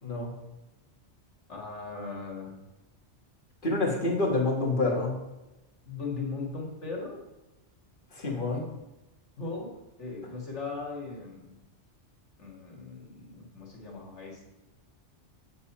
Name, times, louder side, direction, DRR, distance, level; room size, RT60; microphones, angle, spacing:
voice 1, 1.5-2.5 5.9-7.2 8.4-8.5 9.4-9.7 10.0-11.6 12.4-14.5, left 4 dB, 85° left, -1 dB, 2.4 m, -38 dB
voice 2, 3.6-5.2 8.1-8.6, left 2 dB, 50° left, -2 dB, 2.1 m, -27 dB
8.0 x 7.1 x 4.3 m, 0.99 s
omnidirectional pair, 1.2 m